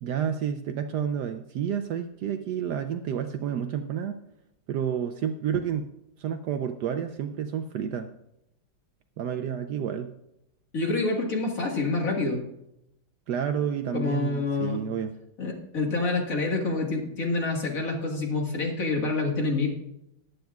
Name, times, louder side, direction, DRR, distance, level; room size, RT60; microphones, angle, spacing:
voice 1, 0.0-4.2 4.7-5.9 6.2-8.1 9.2-10.1 13.3-15.1, right 8 dB, 80° right, 8 dB, 0.9 m, -30 dB
voice 2, 10.7-12.4 13.9-14.8 15.4-19.7, left 3 dB, 45° left, 0 dB, 2.0 m, -27 dB
14.0 x 11.5 x 2.4 m, 0.83 s
omnidirectional pair, 2.3 m